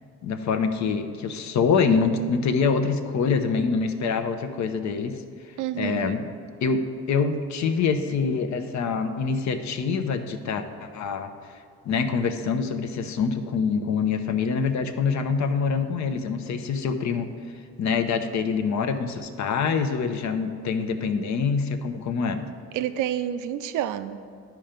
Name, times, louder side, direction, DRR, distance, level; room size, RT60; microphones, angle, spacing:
voice 1, 0.2-5.2 5.7-6.3 6.6-11.3 11.8-17.3 17.8-22.5, left 5 dB, 70° left, 8 dB, 0.8 m, -25 dB
voice 2, 5.6-6.1 22.7-24.2, right 11 dB, 85° right, 11 dB, 0.5 m, -28 dB
11.5 x 4.5 x 5.1 m, 2.4 s
cardioid pair, 90°, 30 cm